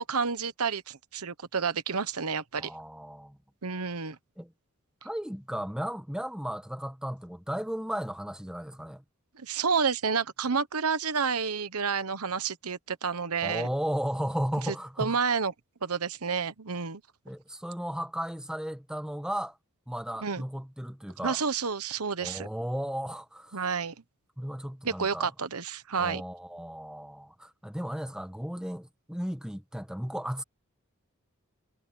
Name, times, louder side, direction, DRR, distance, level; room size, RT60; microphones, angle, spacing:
voice 1, 0.0-2.7 3.6-4.2 9.4-13.7 14.7-15.5 15.8-17.0 20.2-20.4 21.2-22.5 23.5-23.9 24.8-26.2, right 5 dB, 85° right, 1.1 m, -30 dB
voice 2, 2.6-3.4 4.4-4.5 5.0-9.0 13.4-15.2 17.2-19.6 19.9-21.4 22.2-23.6 24.4-25.3 26.0-30.4, equal, 5° right, 1.2 m, -35 dB
head